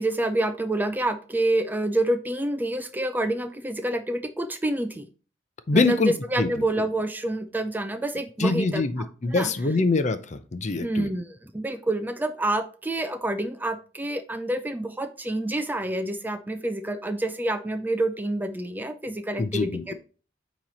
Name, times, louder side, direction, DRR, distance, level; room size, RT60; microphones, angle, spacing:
voice 1, 0.0-5.1 5.7-8.8 9.3-9.5 10.8-19.9, right 1 dB, 10° right, 8 dB, 0.4 m, -28 dB
voice 2, 5.7-6.1 6.4-6.5 8.4-11.1 19.4-19.8, left 3 dB, 40° left, 11 dB, 0.6 m, -24 dB
8.8 x 3.1 x 4.1 m, 0.37 s
head